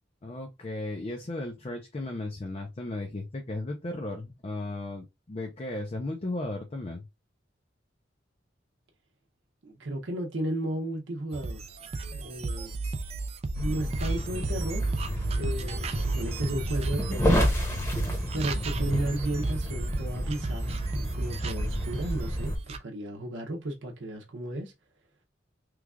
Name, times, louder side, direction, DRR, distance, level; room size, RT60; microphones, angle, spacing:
voice 1, 0.2-7.0, left 2 dB, 35° left, 0.5 m, -35 dB
voice 2, 9.6-11.7 12.1-12.7 13.5-14.9 15.3-17.5 18.3-24.7, right 1 dB, 80° right, 0.7 m, -34 dB
sound 1, 11.3-22.8, right 3 dB, 35° right, 0.4 m, -34 dB
sound 2, 13.5-22.6, equal, 15° left, 0.9 m, -30 dB
3.2 x 2.4 x 3.5 m
head